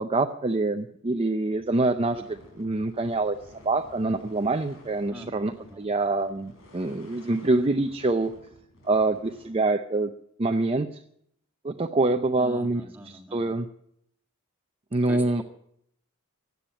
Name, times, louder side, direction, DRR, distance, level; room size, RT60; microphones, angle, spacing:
voice 1, 0.0-3.4 3.6-8.3 8.9-10.1 10.4-10.9 11.6-12.8 13.3-13.7 14.9-15.4, right 2 dB, 25° right, 6 dB, 0.6 m, -25 dB
sound 1, 1.5-9.5, left 1 dB, 70° left, 5.0 m, -53 dB
voice 2, 5.1-5.9 12.4-13.6 15.0-15.4, right 1 dB, 10° right, 2 dB, 1.9 m, -43 dB
15.5 x 9.4 x 8.9 m, 0.72 s
head